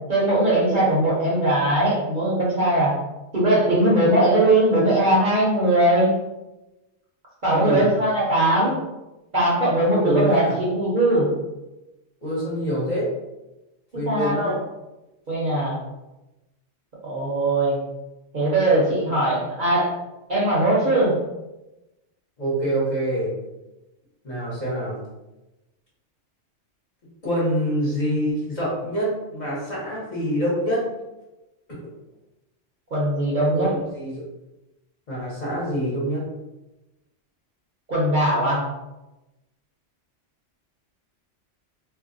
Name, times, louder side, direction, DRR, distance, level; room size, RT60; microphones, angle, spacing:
voice 1, 0.1-2.9 3.3-6.1 7.4-8.8 9.3-11.3 14.1-14.6 15.3-15.8 17.0-17.8 18.3-19.9 20.3-21.1 32.9-33.7 37.9-38.6, right 1 dB, 45° right, -6 dB, 0.8 m, -20 dB
voice 2, 7.5-7.9 10.0-10.5 12.2-13.1 13.9-14.6 22.4-23.3 24.2-25.0 27.2-30.8 31.7-31.8 33.5-34.2 35.1-36.2, equal, 40° left, -6 dB, 0.9 m, -25 dB
2.5 x 2.1 x 3.8 m, 1.0 s
omnidirectional pair, 1.3 m